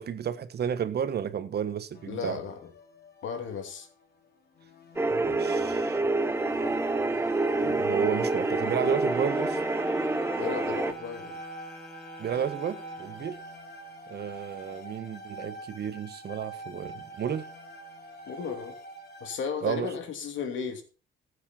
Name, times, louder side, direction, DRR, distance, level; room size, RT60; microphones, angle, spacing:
voice 1, 0.0-2.4 5.1-6.0 7.6-9.6 12.2-13.4 14.1-17.5 19.6-19.9, right 8 dB, 55° right, 1.3 m, -32 dB
sound 1, 1.9-4.0 4.5-19.4, right 2 dB, 50° left, 2.6 m, -45 dB
voice 2, 2.1-2.6 3.2-3.9 10.4-11.4 18.3-18.8 19.2-20.8, left 6 dB, 75° left, 2.8 m, -34 dB
sound 2, 5.0-10.9, right 2 dB, 10° right, 1.0 m, -27 dB
Wind instrument woodwind instrument, 8.8-13.4, left 2 dB, 5° left, 1.7 m, -47 dB
15.0 x 8.3 x 4.4 m
cardioid pair, 90°, 20 cm